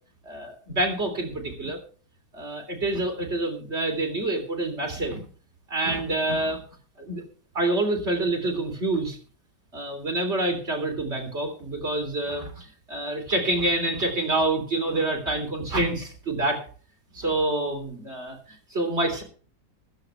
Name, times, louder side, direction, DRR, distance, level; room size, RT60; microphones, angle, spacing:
voice 1, 0.3-1.8 2.3-5.3 5.7-6.6 7.0-7.2 7.5-9.2 9.7-16.6 17.1-19.2, right 2 dB, 40° right, 3 dB, 3.7 m, -27 dB
15.5 x 13.5 x 3.4 m, 0.42 s
omnidirectional pair, 1.7 m